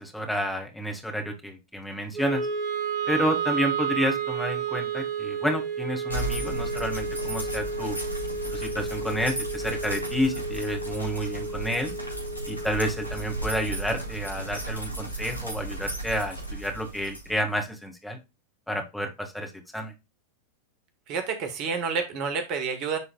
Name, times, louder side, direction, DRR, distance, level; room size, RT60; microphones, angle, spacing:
voice 1, 0.0-2.4 3.1-8.0 8.5-11.9 12.5-18.2 18.7-19.9, equal, ahead, 1 dB, 1.8 m, -30 dB
Wind instrument woodwind instrument, 2.1-14.4, right 5 dB, 20° right, 2.4 m, -32 dB
sound 1, 6.1-17.6, right 2 dB, 80° right, 3.8 m, -35 dB
voice 2, 21.1-23.0, right 5 dB, 40° right, 7 dB, 1.4 m, -29 dB
11.0 x 3.9 x 2.3 m, 0.23 s
figure-of-eight pair, 90°, 0 cm